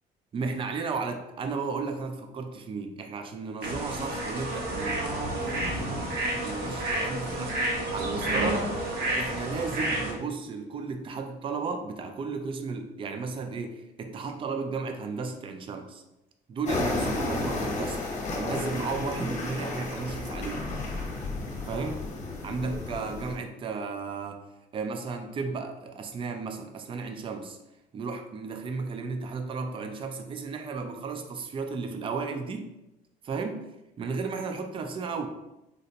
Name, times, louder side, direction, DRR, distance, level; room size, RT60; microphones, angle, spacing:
voice 1, 0.3-6.1 6.4-7.6 7.9-8.9 9.2-16.0 16.5-18.0 18.3-20.7 21.6-22.1 22.4-24.4 24.7-27.6 27.9-32.7 33.2-33.6 34.0-35.3, right 4 dB, 30° right, 5 dB, 0.4 m, -34 dB
sound 1, 3.6-10.1, right 1 dB, 70° right, 1.0 m, -30 dB
sound 2, 16.6-23.4, left 2 dB, 45° left, 0.9 m, -32 dB
3.9 x 2.1 x 2.7 m, 0.92 s
cardioid pair, 110°, 17 cm